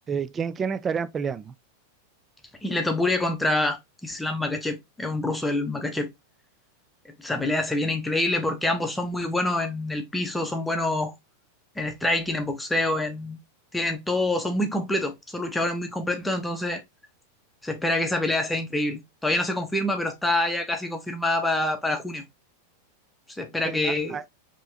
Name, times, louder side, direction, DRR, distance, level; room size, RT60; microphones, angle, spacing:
voice 1, 0.1-1.5 23.6-24.3, right 6 dB, 20° right, 0.4 m, -29 dB
voice 2, 2.6-6.1 7.0-11.1 11.8-13.4 13.7-16.8 17.6-22.2 23.4-24.2, left 1 dB, 5° left, 0.9 m, -26 dB
4.5 x 3.1 x 2.7 m
figure-of-eight pair, 90°, 0 cm